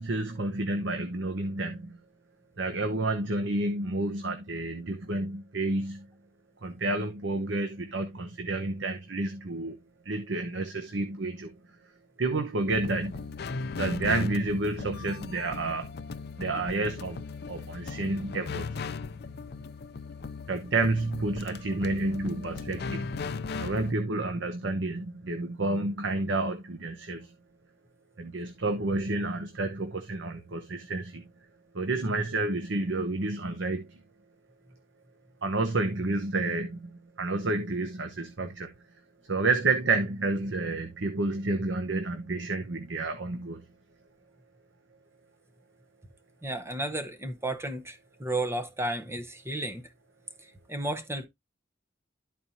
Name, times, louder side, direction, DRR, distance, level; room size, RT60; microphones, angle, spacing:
voice 1, 0.0-1.9 2.6-6.0 6.6-9.8 10.1-11.5 12.2-13.2 13.8-15.9 16.4-17.2 17.5-18.7 20.5-23.1 23.6-27.3 28.2-31.2 31.7-33.9 35.4-36.9 37.2-38.7 39.3-43.6, right 2 dB, 70° right, 0.9 m, -30 dB
sound 1, 12.7-23.9, left 4 dB, 55° left, 0.5 m, -38 dB
voice 2, 46.4-49.8 50.7-51.3, right 1 dB, 15° right, 0.9 m, -33 dB
12.5 x 4.3 x 2.8 m
head